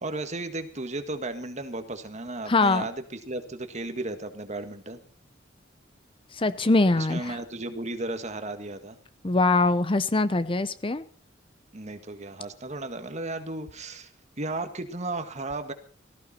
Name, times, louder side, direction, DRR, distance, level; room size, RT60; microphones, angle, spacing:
voice 1, 0.0-5.0 7.0-9.0 11.7-14.1 14.4-15.7, right 2 dB, 40° right, 9 dB, 1.8 m, -34 dB
voice 2, 2.5-2.9 6.3-7.4 9.2-11.0, left 3 dB, 30° left, 14 dB, 0.7 m, -23 dB
18.0 x 14.5 x 4.3 m, 0.43 s
head